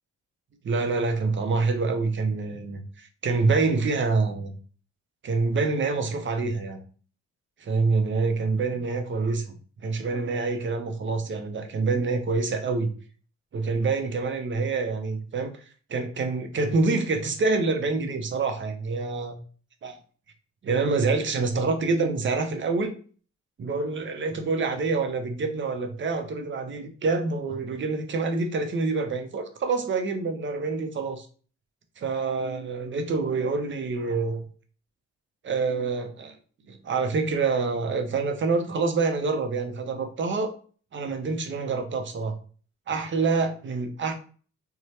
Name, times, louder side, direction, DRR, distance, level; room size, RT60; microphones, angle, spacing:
voice 1, 0.6-4.6 5.2-6.8 7.6-9.5 9.8-12.9 13.5-15.5 15.9-19.4 19.8-20.0 20.6-23.0 23.6-31.3 32.0-34.5 35.4-36.4 36.7-40.5 40.9-42.3 42.9-44.1, right 4 dB, 40° right, 6 dB, 0.6 m, -26 dB
2.7 x 2.2 x 3.2 m, 0.41 s
cardioid pair, 90°, 30 cm